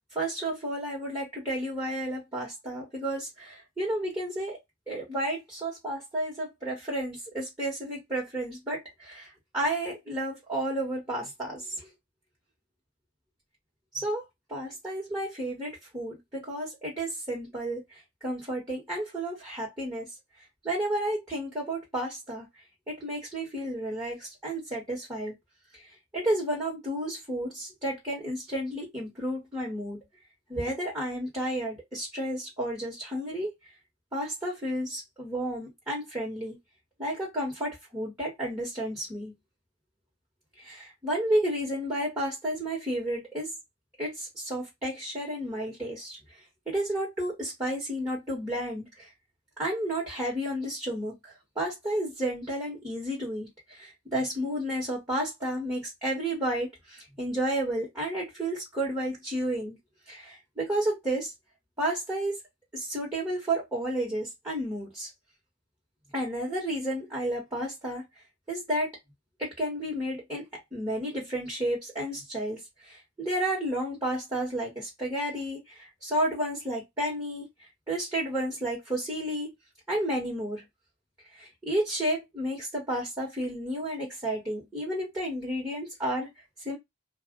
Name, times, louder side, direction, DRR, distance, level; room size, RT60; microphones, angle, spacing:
voice 1, 0.1-4.6 4.9-11.9 13.9-14.2 14.5-17.8 18.2-20.1 20.6-22.5 22.9-25.3 25.7-25.8 26.1-30.0 30.5-33.5 34.1-36.6 37.0-39.3 40.6-43.5 44.0-46.2 46.7-49.1 49.6-59.8 60.1-61.3 61.8-62.4 62.7-65.1 66.1-68.0 68.5-68.9 69.4-70.5 70.7-77.5 77.9-79.5 79.9-80.6 81.3-86.3 86.6-86.8, right 1 dB, 15° right, 1.4 m, -32 dB
2.4 x 2.4 x 3.7 m
head